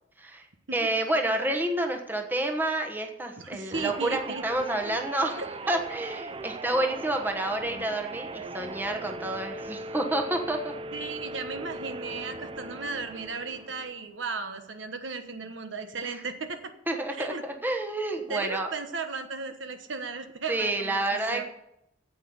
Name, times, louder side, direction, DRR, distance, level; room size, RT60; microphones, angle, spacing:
voice 1, 0.7-5.4 5.7-10.7 11.5-11.7 16.0-16.2 16.9-18.7 20.5-21.4, right 1 dB, 10° right, 3 dB, 1.1 m, -29 dB
voice 2, 3.4-4.4 5.3-5.5 10.9-16.6 17.2-17.4 18.3-21.0 21.3-21.4, right 4 dB, 70° right, 7 dB, 1.2 m, -35 dB
sound 1, 3.7-14.1, right 2 dB, 25° right, 0.4 m, -39 dB
9.2 x 8.2 x 8.1 m, 0.83 s
head